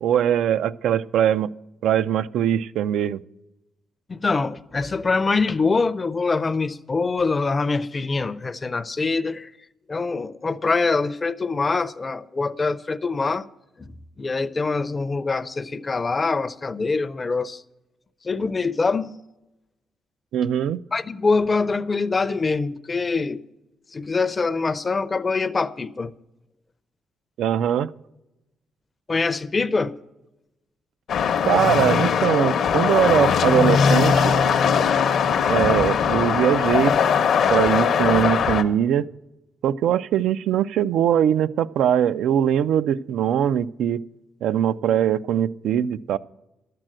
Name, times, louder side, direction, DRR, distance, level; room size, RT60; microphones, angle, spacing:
voice 1, 0.0-1.5 1.8-3.2 20.3-20.8 27.4-27.9 31.4-34.3 35.5-37.0 37.5-39.1 39.6-44.0 44.4-46.2, right 10 dB, 80° right, 0.4 m, -21 dB
voice 2, 4.1-9.5 9.9-13.4 13.8-17.6 18.2-19.1 20.9-23.4 23.9-26.1 29.1-30.0, left 4 dB, 25° left, 0.5 m, -24 dB
sound 1, 31.1-38.6, left 7 dB, 65° left, 0.7 m, -20 dB
11.5 x 7.6 x 7.6 m
cardioid pair, 125°, 0 cm